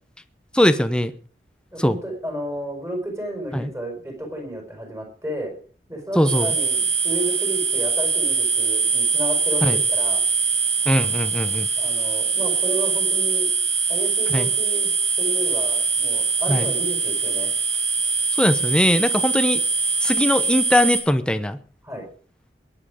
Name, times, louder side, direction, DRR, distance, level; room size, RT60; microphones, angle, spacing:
voice 1, 0.5-1.1 1.8-2.0 3.5-3.7 6.2-6.5 9.6-9.8 10.9-11.7 14.3-14.5 16.5-16.7 18.4-19.6 20.0-21.6, equal, 5° left, 11 dB, 0.8 m, -20 dB
voice 2, 1.7-5.5 5.9-10.2 11.8-13.5 13.9-14.9 15.2-17.5 21.8-22.1, right 1 dB, 15° right, 3 dB, 5.3 m, -32 dB
sound 1, 6.3-21.0, right 4 dB, 40° right, 3.8 m, -22 dB
21.5 x 9.0 x 5.0 m, 0.42 s
head